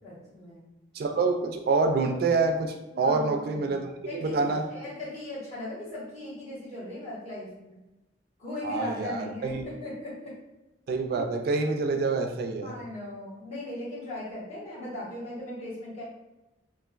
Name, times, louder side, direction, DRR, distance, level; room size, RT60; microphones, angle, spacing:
voice 1, 0.0-0.7 2.9-7.5 8.4-10.3 12.6-16.0, left 2 dB, 40° left, -10 dB, 1.5 m, -38 dB
voice 2, 0.9-3.9 4.2-4.6 8.6-9.6 10.9-12.8, right 3 dB, 60° right, 4 dB, 0.3 m, -26 dB
3.0 x 2.5 x 2.4 m, 1.0 s
head